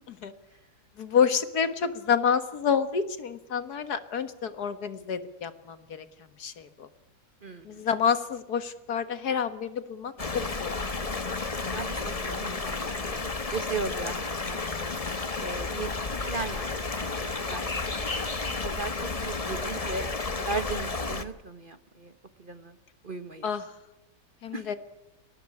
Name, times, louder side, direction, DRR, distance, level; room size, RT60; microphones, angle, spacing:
voice 1, 1.0-6.1 6.4-6.9 7.7-10.7 23.4-23.7 24.4-24.8, left 7 dB, 70° left, 12 dB, 2.0 m, -28 dB
voice 2, 7.4-7.8 11.7-14.7 15.4-16.6 16.9-17.6 18.0-18.1 18.4-18.9 19.2-20.1 20.4-22.1 22.4-22.7 23.0-23.5 24.5-24.7, right 3 dB, 35° right, 11 dB, 1.4 m, -37 dB
sound 1, 10.2-21.2, left 3 dB, 25° left, 1.1 m, -32 dB
23.0 x 18.5 x 9.7 m, 0.92 s
omnidirectional pair, 1.7 m